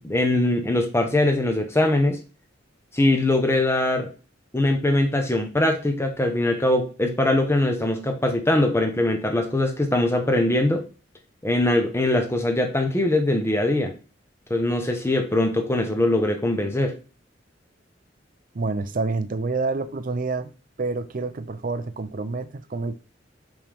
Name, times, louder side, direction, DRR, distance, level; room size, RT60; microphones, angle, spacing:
voice 1, 0.0-2.2 2.9-4.1 4.5-10.8 11.4-13.9 14.5-16.9, left 1 dB, 15° left, 1.0 m, -22 dB
voice 2, 18.5-20.5 20.8-22.9, right 3 dB, 45° right, 0.6 m, -28 dB
5.6 x 5.5 x 3.5 m
head